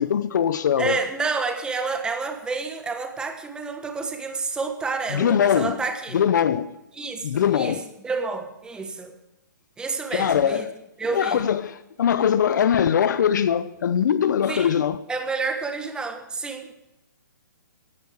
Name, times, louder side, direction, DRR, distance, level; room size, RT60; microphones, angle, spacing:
voice 1, 0.0-1.0 5.1-5.8 6.1-6.7 7.2-7.8 10.1-10.7 11.1-15.0, left 8 dB, 60° left, 0.7 m, -21 dB
voice 2, 0.8-6.2 6.9-9.1 9.8-10.6 11.0-11.4 14.5-14.7 15.1-16.7, right 4 dB, 10° right, 1.2 m, -29 dB
16.0 x 11.5 x 4.9 m
hypercardioid pair, 140°, 11 cm